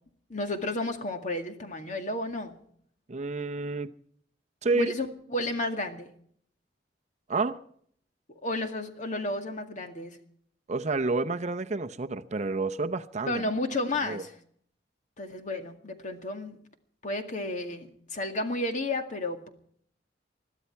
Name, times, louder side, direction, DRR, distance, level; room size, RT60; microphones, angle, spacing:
voice 1, 0.3-2.5 4.7-6.1 8.4-10.2 13.3-14.3 15.2-16.6 17.0-19.5, left 1 dB, 45° left, 2.1 m, -32 dB
voice 2, 3.1-3.9 4.6-4.9 7.3-7.6 10.7-13.4 14.1-14.2, right 3 dB, 40° right, 0.7 m, -29 dB
21.5 x 13.0 x 4.6 m
head